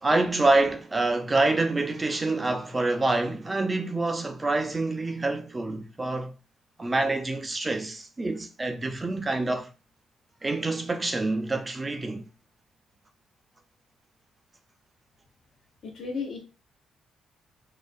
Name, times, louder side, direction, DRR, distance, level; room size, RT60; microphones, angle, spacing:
voice 1, 0.0-6.4 6.8-9.7 10.4-12.3, right 2 dB, 20° right, 0.4 m, -26 dB
voice 2, 15.8-16.4, left 5 dB, 65° left, 0.8 m, -33 dB
2.4 x 2.0 x 2.5 m
cardioid pair, 90°, 0 cm